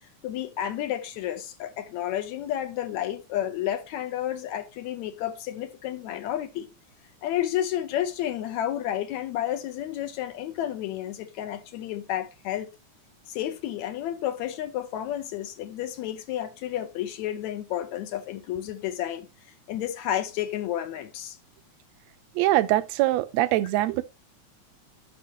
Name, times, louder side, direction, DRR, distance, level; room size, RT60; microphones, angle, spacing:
voice 1, 0.2-6.7 7.2-12.7 13.3-19.3 19.7-21.4, left 11 dB, 75° left, 2.1 m, -31 dB
voice 2, 22.3-24.0, right 16 dB, 80° right, 1.7 m, -23 dB
11.0 x 6.4 x 2.9 m
omnidirectional pair, 3.4 m